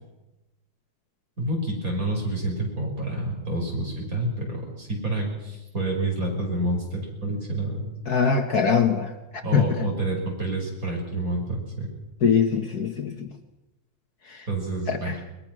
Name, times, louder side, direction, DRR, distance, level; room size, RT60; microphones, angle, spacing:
voice 1, 1.4-7.9 9.4-11.9 14.5-15.1, right 1 dB, 45° right, 0 dB, 5.9 m, -28 dB
voice 2, 8.1-9.9 12.2-13.3 14.3-14.4 14.9-15.2, left 6 dB, 55° left, 6 dB, 1.6 m, -23 dB
22.0 x 20.5 x 6.1 m, 1.0 s
omnidirectional pair, 2.2 m